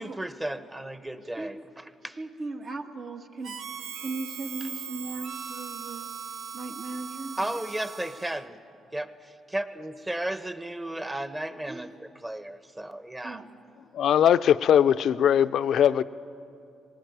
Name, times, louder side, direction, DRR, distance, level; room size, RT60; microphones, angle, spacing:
voice 1, 0.0-2.2 7.4-8.6 8.9-13.4, right 1 dB, 15° right, 1.2 m, -34 dB
voice 2, 2.2-3.5 4.0-6.1 6.5-7.6 11.7-12.0 13.2-13.5, right 3 dB, 50° right, 1.8 m, -37 dB
Harmonica, 3.4-8.5, right 7 dB, 70° right, 0.8 m, -39 dB
voice 3, 13.9-16.0, left 9 dB, 70° left, 0.5 m, -20 dB
19.5 x 18.0 x 9.6 m
cardioid pair, 85°, 0 cm